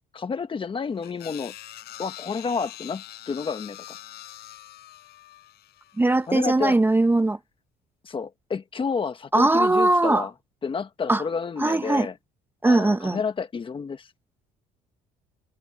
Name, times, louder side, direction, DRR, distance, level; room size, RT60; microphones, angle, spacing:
voice 1, 0.1-1.5 2.0-4.0 6.3-6.8 8.0-10.3 10.6-12.1 12.6-14.1, left 5 dB, 30° left, 1.5 m, -30 dB
sound 1, 1.0-6.4, left 14 dB, 70° left, 5.3 m, -44 dB
voice 2, 6.0-7.4 9.3-10.2 11.1-11.2 11.6-12.1 12.6-13.2, right 2 dB, 10° right, 0.8 m, -20 dB
cardioid pair, 110°, 17 cm